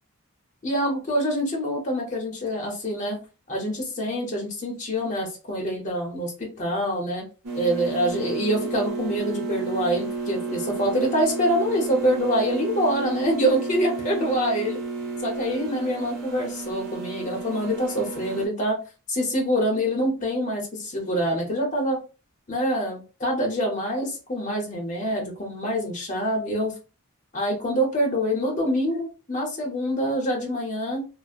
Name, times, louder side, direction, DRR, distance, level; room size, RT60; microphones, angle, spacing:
voice 1, 0.6-3.2 3.5-7.2 7.5-14.8 15.2-18.8 19.1-22.0 22.5-26.7 27.3-31.0, equal, 35° left, 0 dB, 0.7 m, -25 dB
sound 1, 7.4-18.5, right 3 dB, 80° right, 0.7 m, -32 dB
2.7 x 2.0 x 2.4 m, 0.32 s
head